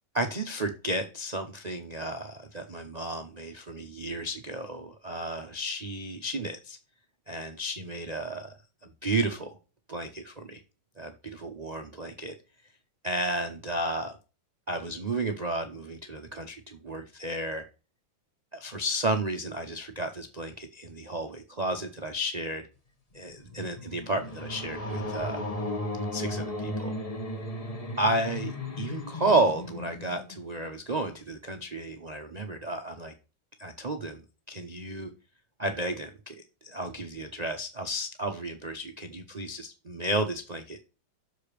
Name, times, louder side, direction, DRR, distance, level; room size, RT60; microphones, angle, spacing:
voice 1, 0.1-6.8 7.3-8.5 8.8-9.6 9.9-10.6 11.0-12.3 13.0-14.2 14.7-17.6 18.5-22.7 23.1-25.4 26.1-26.9 28.0-33.1 33.6-34.2 34.5-35.1 35.6-36.3 36.6-40.8, right 2 dB, 80° right, 6 dB, 0.3 m, -32 dB
sound 1, 23.2-30.5, left 1 dB, 25° left, 0.9 m, -35 dB
6.7 x 5.0 x 6.7 m, 0.33 s
omnidirectional pair, 2.1 m